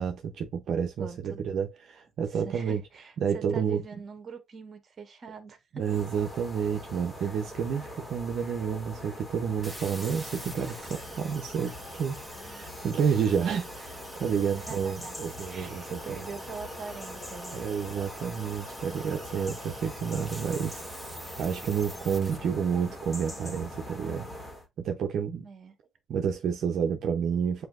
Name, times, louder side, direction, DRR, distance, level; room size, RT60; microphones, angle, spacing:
voice 1, 0.0-2.8 3.2-3.8 5.7-16.2 17.5-20.8 21.4-24.3 24.8-25.5 26.1-27.6, right 7 dB, 70° right, 0.6 m, -30 dB
voice 2, 1.0-1.4 2.2-5.9 14.6-17.7 25.4-25.7, right 5 dB, 45° right, 1.2 m, -43 dB
sound 1, 5.8-24.7, left 1 dB, 20° left, 1.7 m, -42 dB
sound 2, 9.6-22.4, equal, ahead, 1.1 m, -46 dB
7.8 x 2.7 x 2.4 m
cardioid pair, 90°, 0 cm